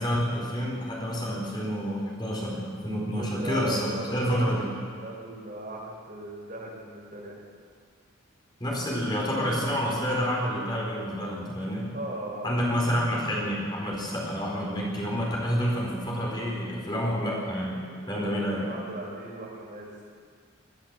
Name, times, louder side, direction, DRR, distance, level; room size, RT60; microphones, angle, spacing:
voice 1, 0.0-4.7 8.6-11.9 12.4-17.8 18.1-18.6, equal, 20° left, -3 dB, 4.4 m, -28 dB
voice 2, 3.2-4.7 4.9-7.4 11.9-12.7 17.8-19.9, right 2 dB, 40° right, -2 dB, 4.9 m, -38 dB
22.0 x 16.0 x 7.5 m, 2.1 s
head